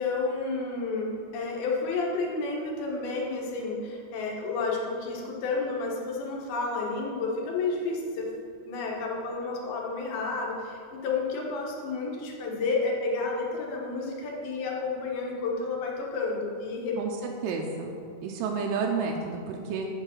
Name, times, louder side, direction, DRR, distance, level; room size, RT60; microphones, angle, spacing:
voice 1, 0.0-8.3 8.7-17.0, left 3 dB, 70° left, -1 dB, 2.7 m, -31 dB
voice 2, 17.0-17.9 18.2-19.9, right 5 dB, 85° right, 1 dB, 2.7 m, -31 dB
8.1 x 4.7 x 5.7 m, 2.3 s
omnidirectional pair, 4.9 m